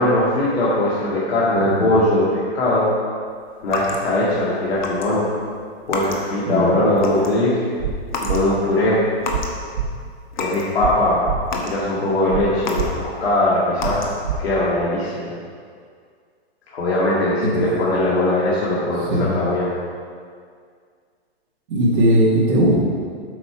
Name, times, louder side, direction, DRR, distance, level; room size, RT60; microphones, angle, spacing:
voice 1, 0.0-2.9 3.6-5.3 5.9-7.7 8.3-9.0 10.4-11.2 11.5-14.1 14.4-15.3 16.7-19.7, left 1 dB, 70° left, -8 dB, 2.0 m, -20 dB
sound 1, 3.6-4.3 4.8-5.1 5.3-6.5 6.8-7.5 8.1-8.4 8.8-9.6 10.0-10.7 11.1-13.2 13.8-14.4, left 3 dB, 45° left, 1.0 m, -30 dB
voice 2, 6.5-6.8 17.4-17.6 19.0-19.3 21.7-22.7, right 1 dB, 30° right, -7 dB, 1.4 m, -18 dB
sound 2, 7.8-7.9 8.2-8.4 9.3-9.4 9.7-9.9 10.8-10.9 11.2-11.4 12.3-12.4 12.7-12.9 13.8-13.9 14.2-14.4, right 10 dB, 50° right, 0.8 m, -24 dB
8.0 x 5.9 x 4.6 m, 2.1 s
hypercardioid pair, 180°, 32 cm